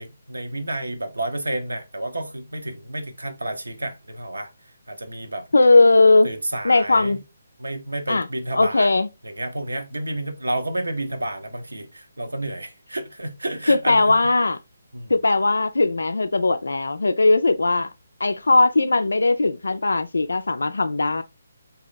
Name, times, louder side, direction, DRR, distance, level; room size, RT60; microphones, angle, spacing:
voice 1, 0.0-4.5 4.9-5.5 6.2-7.2 7.6-8.9 9.2-14.1 14.9-15.1, right 1 dB, 75° right, 0.8 m, -30 dB
voice 2, 5.5-6.3 6.6-7.2 8.1-8.3 8.5-9.1 13.7-14.6 15.1-17.9 18.2-21.2, left 3 dB, 70° left, 0.3 m, -18 dB
2.9 x 2.7 x 3.8 m
figure-of-eight pair, 140°, 0 cm